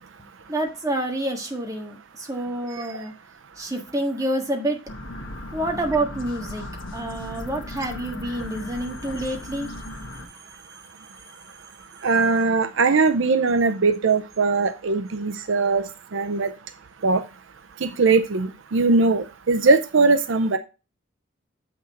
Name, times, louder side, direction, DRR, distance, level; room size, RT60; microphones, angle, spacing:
voice 1, 0.5-3.1 3.6-4.8 5.5-6.7 6.9-9.7 10.1-10.2 10.7-11.3, right 1 dB, 15° right, 2 dB, 1.6 m, -28 dB
sound 1, 4.9-10.3, left 1 dB, 65° left, 1.3 m, -36 dB
voice 2, 12.0-16.5 17.0-17.2 17.8-20.6, right 3 dB, 70° right, 10 dB, 0.6 m, -20 dB
7.6 x 6.0 x 4.1 m, 0.30 s
head